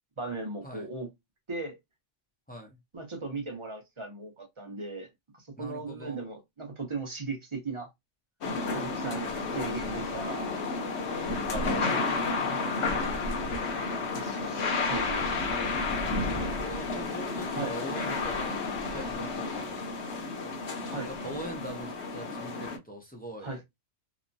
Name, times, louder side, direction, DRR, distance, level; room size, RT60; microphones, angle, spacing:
voice 1, 0.2-1.1 1.5-1.8 2.9-5.1 5.3-7.9 8.7-10.9 11.5-12.2 14.1-15.4 17.4-17.8 20.9-21.1 23.4-23.6, right 3 dB, 30° right, 0.6 m, -38 dB
voice 2, 2.5-2.8 5.6-6.2 11.6-12.2 12.5-13.3 16.4-19.8 20.2-23.6, equal, 15° left, 0.4 m, -43 dB
sound 1, 8.4-22.8, left 3 dB, 70° left, 1.0 m, -31 dB
2.9 x 2.1 x 2.6 m
omnidirectional pair, 1.2 m